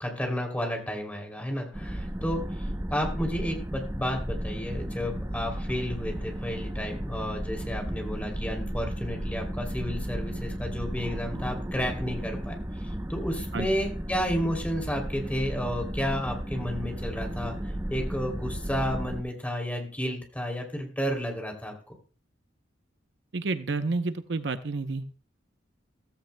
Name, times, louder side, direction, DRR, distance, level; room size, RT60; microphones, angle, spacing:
voice 1, 0.0-21.7, equal, 10° left, 2 dB, 2.9 m, -32 dB
sound 1, 1.7-19.2, equal, 15° right, 0.7 m, -34 dB
voice 2, 23.3-25.1, right 3 dB, 65° right, 10 dB, 0.7 m, -30 dB
15.5 x 15.0 x 2.2 m, 0.39 s
head